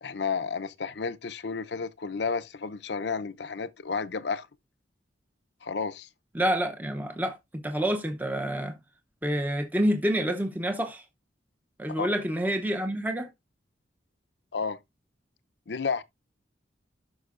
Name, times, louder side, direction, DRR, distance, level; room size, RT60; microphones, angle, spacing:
voice 1, 0.0-4.5 5.6-6.1 12.0-12.1 14.5-14.8 15.7-16.0, left 5 dB, 65° left, 0.7 m, -31 dB
voice 2, 6.3-8.8 9.2-11.0 11.8-13.3, equal, 10° right, 0.7 m, -28 dB
13.0 x 5.8 x 2.5 m
head